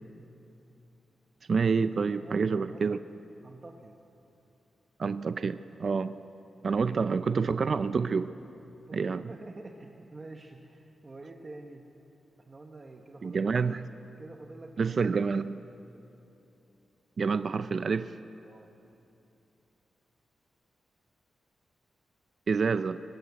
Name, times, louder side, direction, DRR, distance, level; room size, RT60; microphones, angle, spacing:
voice 1, 1.5-3.0 5.0-6.1 6.6-8.3 8.9-9.3 13.2-13.8 14.8-15.6 17.2-18.2 22.5-23.0, right 5 dB, 40° right, 12 dB, 0.4 m, -28 dB
voice 2, 2.1-2.8 3.4-4.0 8.7-11.8 12.4-13.7 14.2-15.2 18.4-18.7, right 2 dB, 25° right, 2 dB, 1.1 m, -48 dB
22.5 x 19.5 x 8.2 m, 2.9 s
wide cardioid pair, 180°, 0 cm